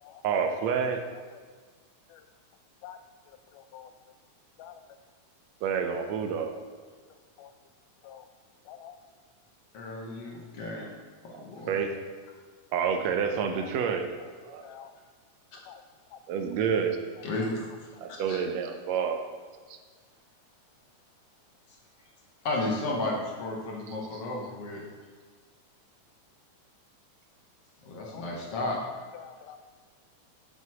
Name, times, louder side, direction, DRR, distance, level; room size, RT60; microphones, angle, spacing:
voice 1, 0.2-1.0 5.6-6.6 11.3-11.9 12.7-14.1 14.4-14.7 16.3-17.0 18.0-19.2 24.1-24.2, right 6 dB, 70° right, 5 dB, 1.8 m, -28 dB
voice 2, 3.5-3.9 4.6-4.8 7.4-7.5 8.0-8.2 8.7-9.0 13.6-13.9 14.6-14.9 15.7-15.8 16.1-16.2 28.0-28.3 28.6-28.7 29.1-29.6, left 10 dB, 90° left, 9 dB, 2.2 m, -47 dB
voice 3, 9.7-10.9 11.2-11.8 17.2-17.7 18.1-18.4 22.4-24.8 27.9-28.8, left 2 dB, 55° left, -2 dB, 2.1 m, -33 dB
7.1 x 6.2 x 6.1 m, 1.5 s
omnidirectional pair, 3.6 m